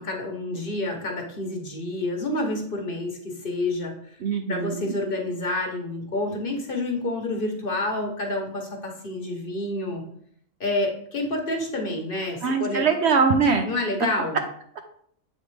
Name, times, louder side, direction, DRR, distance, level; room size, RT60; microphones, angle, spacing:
voice 1, 0.0-4.2 4.5-10.0 10.6-12.8 13.6-14.4, left 2 dB, 45° left, 1 dB, 1.2 m, -28 dB
voice 2, 4.2-4.9 12.4-13.7, right 5 dB, 65° right, 6 dB, 0.8 m, -22 dB
7.6 x 4.2 x 3.3 m, 0.65 s
omnidirectional pair, 1.4 m